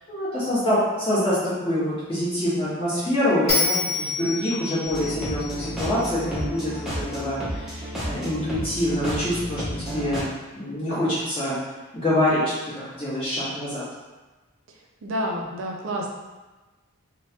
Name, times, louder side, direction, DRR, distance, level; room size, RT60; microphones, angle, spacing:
voice 1, 0.1-10.2 10.5-11.6 11.9-12.4 12.7-13.8, left 1 dB, 25° left, -12 dB, 1.2 m, -25 dB
Bell, 3.5-6.7, left 4 dB, 45° left, 1.1 m, -28 dB
sound 1, 4.8-10.2, equal, ahead, 0.6 m, -32 dB
voice 2, 15.0-16.1, equal, 60° right, 0 dB, 0.5 m, -29 dB
3.2 x 2.2 x 2.8 m, 1.2 s
head